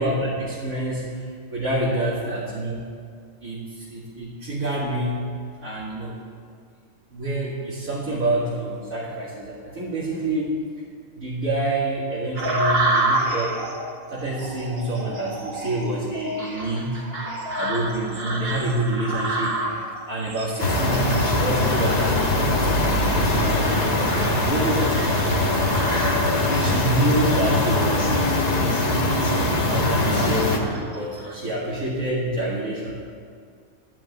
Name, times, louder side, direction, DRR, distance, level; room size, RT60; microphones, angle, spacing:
voice 1, 0.0-2.8 3.4-5.3 5.6-6.2 7.1-10.6 11.2-13.6 14.1-17.0 17.5-19.6 20.1-22.2 22.8-25.7 26.2-28.1 28.4-28.8 29.6-32.9, right 1 dB, 80° right, -7 dB, 2.5 m, -27 dB
sound 1, 12.3-26.7 27.1-27.8 28.3-28.5 29.0-29.7 30.1-31.4, right 1 dB, 45° right, 1.9 m, -30 dB
sound 2, 20.6-30.6, left 2 dB, 30° left, 1.3 m, -22 dB
13.0 x 6.1 x 9.6 m, 2.2 s
omnidirectional pair, 1.4 m